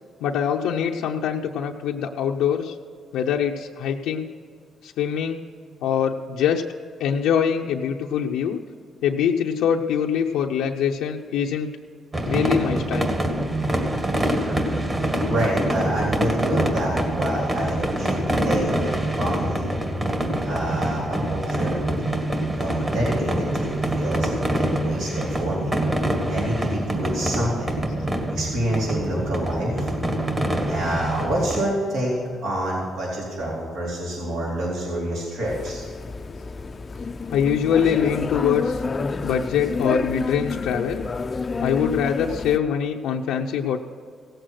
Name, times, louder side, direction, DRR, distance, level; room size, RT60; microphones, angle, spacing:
voice 1, 0.2-2.8 3.1-4.3 4.8-5.4 5.8-6.6 7.0-8.6 9.0-11.7 12.3-13.1 37.3-38.8 39.2-41.1 41.6-43.8, left 8 dB, 90° left, 0 dB, 0.6 m, -23 dB
sound 1, 12.1-31.6, right 1 dB, 25° right, 2.0 m, -25 dB
voice 2, 14.4-14.7 15.2-19.8 20.4-21.7 22.6-25.8 26.3-27.8 28.3-29.9 30.7-32.1 32.4-35.9, right 1 dB, 75° right, -5 dB, 3.8 m, -27 dB
sound 2, 35.4-42.6, left 4 dB, 35° left, 0.5 m, -29 dB
17.0 x 7.9 x 6.4 m, 2.2 s
cardioid pair, 90°, 0 cm